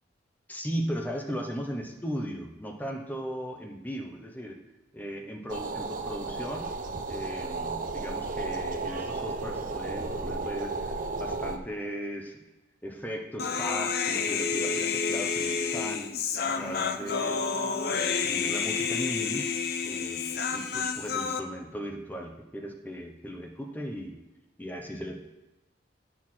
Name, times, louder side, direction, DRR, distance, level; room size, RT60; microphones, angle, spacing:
voice 1, 0.5-4.6 4.9-6.7 7.1-12.4 12.8-16.1 16.5-17.4 17.9-19.5 19.8-24.2 24.6-25.2, equal, 10° left, 2 dB, 0.8 m, -37 dB
sound 1, 5.5-11.6, right 3 dB, 45° right, 0.6 m, -33 dB
Human voice, 13.4-21.4, left 5 dB, 55° left, 0.5 m, -29 dB
9.2 x 6.2 x 4.4 m, 1.0 s
head